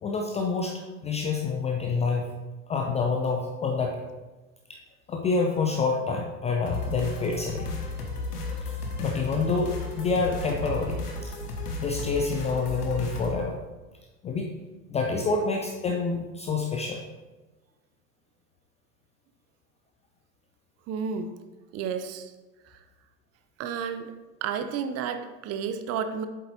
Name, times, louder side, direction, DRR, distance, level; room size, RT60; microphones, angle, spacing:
voice 1, 0.0-2.3 2.7-4.0 4.7-4.8 5.1-7.7 8.6-11.4 11.8-13.6 14.2-14.5 14.9-17.0, left 4 dB, 15° left, 2 dB, 0.4 m, -27 dB
sound 1, 6.7-13.3, left 3 dB, 75° left, 1.2 m, -34 dB
voice 2, 20.9-21.3 21.7-22.3 22.7-22.8 23.6-24.1 24.4-26.3, right 7 dB, 35° right, 8 dB, 0.6 m, -31 dB
8.1 x 7.3 x 2.7 m, 1.2 s
figure-of-eight pair, 75°, 47 cm